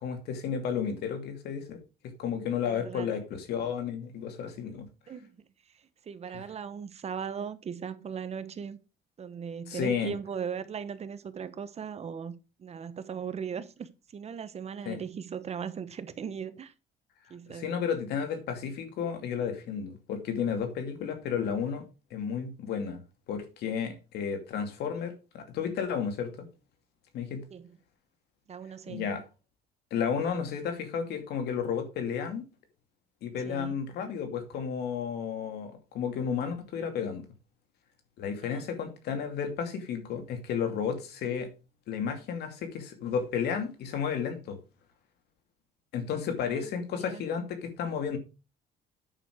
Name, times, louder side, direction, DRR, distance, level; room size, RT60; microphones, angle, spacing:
voice 1, 0.0-4.9 6.3-6.4 9.7-10.1 14.9-15.0 17.5-21.8 22.1-23.0 23.3-26.3 27.1-27.4 28.9-29.2 29.9-32.5 33.2-37.3 38.2-41.5 41.9-44.6 45.9-48.2, left 7 dB, 75° left, 2.5 m, -32 dB
voice 2, 2.6-3.1 5.1-5.4 5.7-8.8 9.2-12.3 12.6-16.7 17.3-17.8 27.5-27.8 28.5-29.1 33.4-33.8 38.4-38.7 46.4-47.2, right 7 dB, 40° right, 1.1 m, -38 dB
9.0 x 6.5 x 4.9 m
cardioid pair, 110°, 17 cm